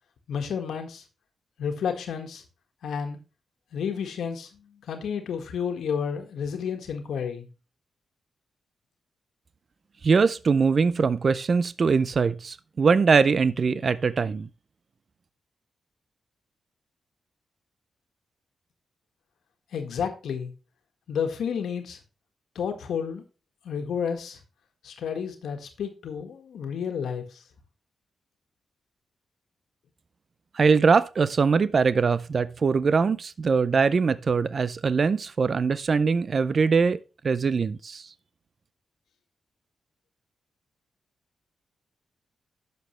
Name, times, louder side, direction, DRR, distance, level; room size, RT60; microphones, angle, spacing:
voice 1, 0.3-1.0 1.6-2.4 2.8-3.2 3.7-7.5 19.7-20.5 21.1-22.0 22.6-23.2 23.6-24.4 24.8-27.4, left 7 dB, 90° left, 1.6 m, -31 dB
voice 2, 10.0-14.5 30.5-37.0 37.2-38.1, right 5 dB, 40° right, 0.4 m, -22 dB
11.0 x 6.9 x 3.2 m
wide cardioid pair, 160°, 0 cm